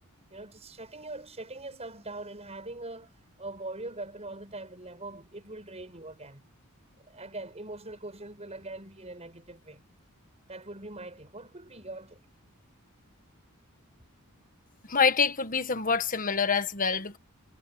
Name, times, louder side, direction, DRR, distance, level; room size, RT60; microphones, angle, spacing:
voice 1, 0.3-3.1 3.4-6.4 7.1-9.8 10.5-12.3, right 2 dB, 30° right, 7.4 m, -42 dB
voice 2, 14.9-17.2, left 5 dB, 40° left, 1.4 m, -26 dB
head